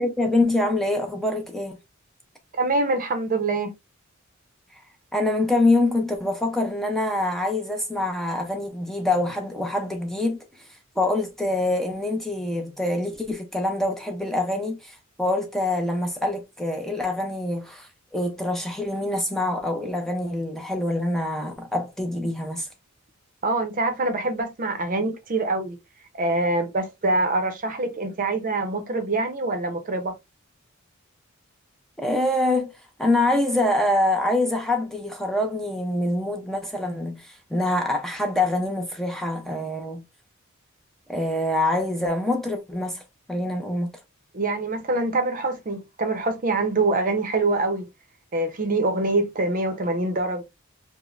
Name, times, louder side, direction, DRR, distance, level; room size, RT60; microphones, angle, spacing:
voice 1, 0.0-1.8 5.1-10.7 11.0-22.7 32.0-32.7 33.0-40.0 41.1-43.0 43.3-43.9, left 2 dB, ahead, 0.5 m, -25 dB
voice 2, 2.6-3.7 23.4-25.8 26.1-30.1 44.3-47.9 48.3-50.4, right 2 dB, 40° right, 0.6 m, -25 dB
5.0 x 2.1 x 2.4 m
head